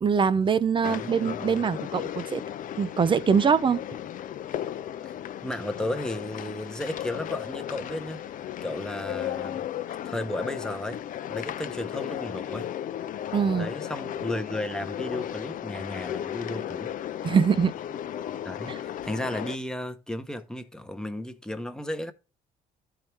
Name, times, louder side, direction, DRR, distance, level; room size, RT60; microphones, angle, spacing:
voice 1, 0.0-2.4 2.8-3.8 13.3-13.7 17.2-17.7, right 6 dB, 30° right, 0.7 m, -23 dB
sound 1, 0.8-19.6, left 10 dB, 50° left, 0.6 m, -35 dB
voice 2, 0.8-1.6 5.0-5.1 5.4-9.7 10.0-11.0 11.3-12.7 13.6-16.9 18.4-22.1, left 1 dB, 5° left, 1.0 m, -34 dB
13.0 x 4.7 x 3.4 m
cardioid pair, 110°, 17 cm